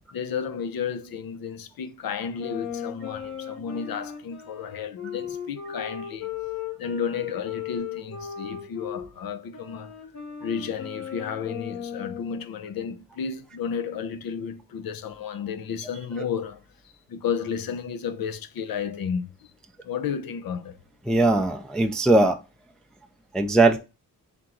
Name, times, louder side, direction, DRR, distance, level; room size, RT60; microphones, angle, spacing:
voice 1, 0.1-6.3 6.8-9.9 10.4-16.6 17.1-19.3 19.8-20.8, left 7 dB, 80° left, 0.6 m, -32 dB
sound 1, 2.4-9.1 9.5-12.5, left 8 dB, 55° left, 1.0 m, -36 dB
voice 2, 21.1-22.4 23.3-23.8, right 2 dB, ahead, 0.3 m, -19 dB
3.6 x 2.9 x 3.7 m
wide cardioid pair, 120°, 35 cm